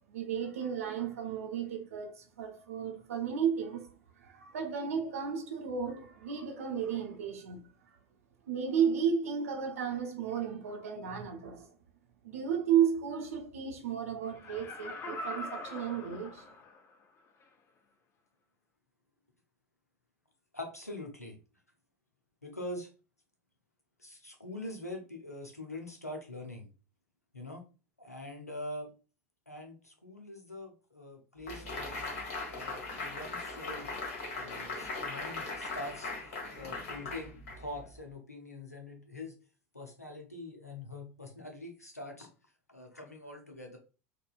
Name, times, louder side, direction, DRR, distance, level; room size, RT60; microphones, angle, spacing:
voice 1, 0.1-3.9 4.2-7.6 8.5-11.7 12.2-16.5, right 7 dB, 70° right, 0.7 m, -33 dB
Laughter, 14.3-16.9 17.4-17.5, left 2 dB, 30° left, 0.5 m, -42 dB
voice 2, 20.5-21.4 22.4-22.9 24.0-26.7 27.3-27.6 28.0-28.9 29.5-32.0 32.5-33.9 34.3-39.3 39.7-42.3 42.7-43.8, left 1 dB, 90° left, 0.6 m, -44 dB
sound 1, 31.5-37.9, left 3 dB, 65° left, 1.1 m, -39 dB
3.7 x 2.2 x 2.4 m
figure-of-eight pair, 75°, 8 cm